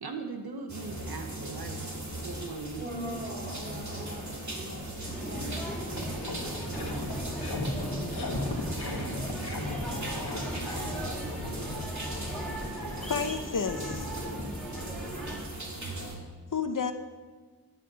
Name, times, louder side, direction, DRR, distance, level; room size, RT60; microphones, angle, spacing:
voice 1, 0.0-1.9 2.2-3.3 4.3-4.4, right 4 dB, 70° right, 4 dB, 1.1 m, -40 dB
sound 1, 0.7-16.2, right 1 dB, 45° right, 2.2 m, -38 dB
voice 2, 2.7-4.8 5.1-6.5 7.4-9.1 9.7-11.6 12.5-12.7 14.9-15.5, equal, 25° right, -3 dB, 2.7 m, -44 dB
sound 2, 5.0-15.4, equal, ahead, 2.3 m, -39 dB
sound 3, 5.2-5.3 5.6-15.0, left 2 dB, 85° left, 1.9 m, -38 dB
voice 3, 13.0-14.1 16.5-16.9, left 5 dB, 55° left, 8 dB, 0.8 m, -31 dB
9.3 x 9.3 x 6.2 m, 1.4 s
wide cardioid pair, 80°, 39 cm